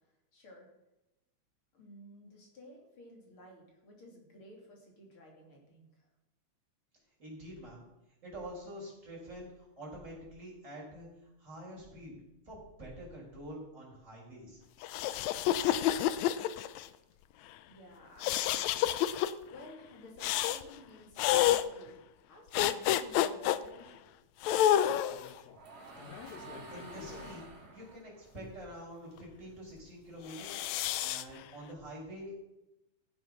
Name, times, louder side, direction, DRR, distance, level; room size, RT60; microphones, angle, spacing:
voice 1, 0.3-0.7 1.7-6.1 17.7-22.0 22.2-24.1, left 1 dB, 45° left, 0 dB, 3.5 m, -54 dB
voice 2, 7.2-7.8 8.2-11.1 11.4-12.2 12.5-14.6 26.2-26.3 26.7-30.7 31.0-32.3, equal, 20° right, -4 dB, 5.4 m, -46 dB
sound 1, 14.8-16.9 18.2-19.3 20.2-20.6 21.2-21.6 22.5-23.6 24.4-25.3 26.1-27.2 30.3-31.2, left 12 dB, 75° left, 1.7 m, -29 dB
sound 2, 24.8-29.4 29.7-31.3, right 2 dB, 65° right, 4.3 m, -50 dB
16.5 x 7.6 x 6.1 m, 0.93 s
omnidirectional pair, 3.6 m